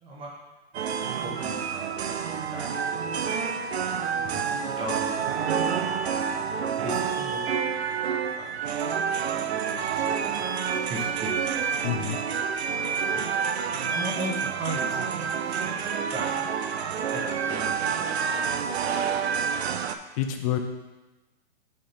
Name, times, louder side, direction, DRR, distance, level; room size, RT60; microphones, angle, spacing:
voice 1, 0.0-0.3 0.9-3.7 4.2-7.6 7.8-8.6 9.3-11.7 11.9-12.2 12.6-13.2 13.7-16.5 16.8-19.8, right 1 dB, 15° right, -3 dB, 1.1 m, -39 dB
sound 1, 0.7-20.0, right 7 dB, 85° right, 0.7 m, -28 dB
voice 2, 4.2-4.6 11.8-12.2 20.2-20.6, left 11 dB, 35° left, 6 dB, 0.7 m, -29 dB
6.6 x 5.7 x 4.3 m, 1.1 s
hypercardioid pair, 150°, 31 cm